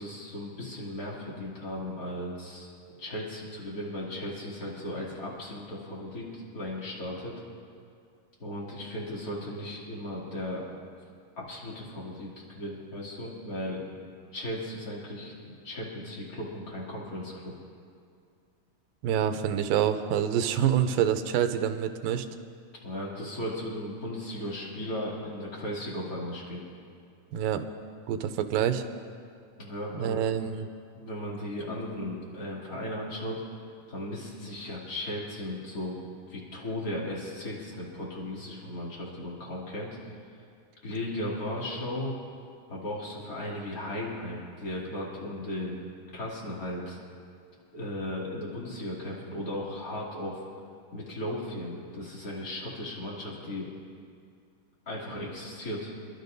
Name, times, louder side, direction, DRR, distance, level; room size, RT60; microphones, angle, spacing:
voice 1, 0.0-2.7 3.0-7.4 8.4-10.6 11.4-13.8 14.3-17.5 22.8-26.6 29.6-30.2 30.9-33.4 33.9-36.0 36.3-40.0 40.8-42.1 42.7-45.8 46.1-47.0 47.7-50.4 50.9-53.7 54.9-55.9, left 1 dB, 25° left, -5 dB, 2.8 m, -36 dB
voice 2, 19.0-22.3 27.3-27.6 28.1-28.8 29.9-30.7, right 9 dB, 90° right, 8 dB, 2.4 m, -26 dB
27.5 x 12.0 x 2.6 m, 2.3 s
omnidirectional pair, 4.0 m